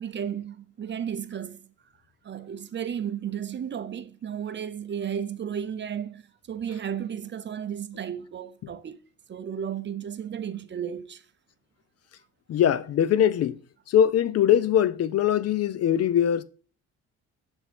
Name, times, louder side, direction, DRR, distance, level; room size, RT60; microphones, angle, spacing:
voice 1, 0.0-1.6 2.2-6.2 6.5-9.0 9.3-11.2, right 8 dB, 40° right, 0.6 m, -33 dB
voice 2, 12.5-13.6 13.9-16.4, left 10 dB, 55° left, 0.5 m, -22 dB
7.0 x 3.5 x 4.2 m
cardioid pair, 90°, 30 cm